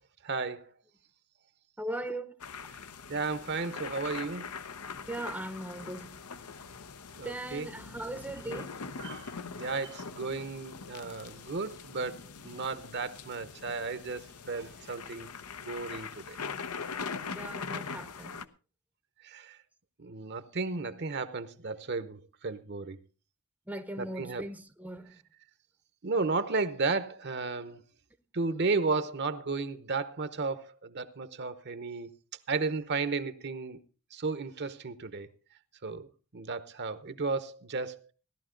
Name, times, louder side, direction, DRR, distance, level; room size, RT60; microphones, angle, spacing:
voice 1, 0.2-0.7 3.1-4.5 7.2-7.7 8.4-8.6 9.0-15.3 15.6-16.4 19.2-19.6 20.0-23.0 24.0-24.4 26.0-27.8 28.3-32.1 32.5-33.8 34.1-35.3 35.8-38.1, right 4 dB, 50° right, 0.9 m, -34 dB
voice 2, 1.8-2.3 5.1-6.2 7.2-8.8 17.4-18.4 23.7-25.2, right 1 dB, 5° right, 0.7 m, -39 dB
sound 1, 2.4-18.4, left 5 dB, 90° left, 0.9 m, -42 dB
16.5 x 12.0 x 3.8 m
head